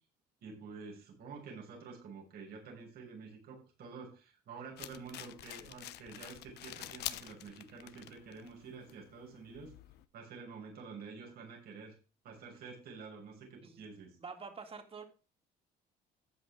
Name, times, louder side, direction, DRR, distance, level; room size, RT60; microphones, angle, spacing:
voice 1, 0.4-9.7 10.1-12.0 12.2-14.2, right 5 dB, 65° right, 0 dB, 6.5 m, -49 dB
sound 1, 4.8-10.1, left 14 dB, 80° left, 1.0 m, -47 dB
voice 2, 14.2-15.0, right 5 dB, 35° right, 5 dB, 3.4 m, -47 dB
13.5 x 9.6 x 3.7 m, 0.33 s
cardioid pair, 110°, 17 cm